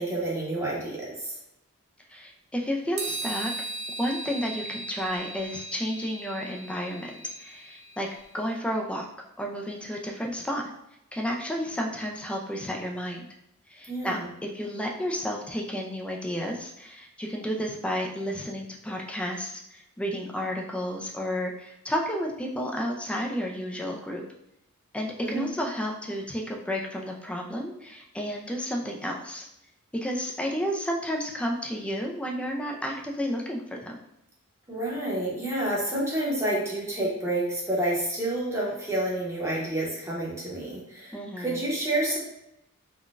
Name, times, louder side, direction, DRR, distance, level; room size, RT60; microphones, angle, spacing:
voice 1, 0.0-1.3 13.9-14.3 25.2-25.5 34.7-42.2, right 1 dB, 15° right, -5 dB, 0.8 m, -29 dB
voice 2, 2.1-3.5 4.0-8.1 8.3-9.1 9.4-10.7 11.1-13.3 13.7-24.2 24.9-29.5 30.0-34.0 41.1-41.6, equal, 5° left, 0 dB, 0.3 m, -31 dB
Triangle Ring Soft, 3.0-8.3, right 2 dB, 80° right, 0.6 m, -37 dB
3.7 x 2.2 x 2.4 m, 0.83 s
head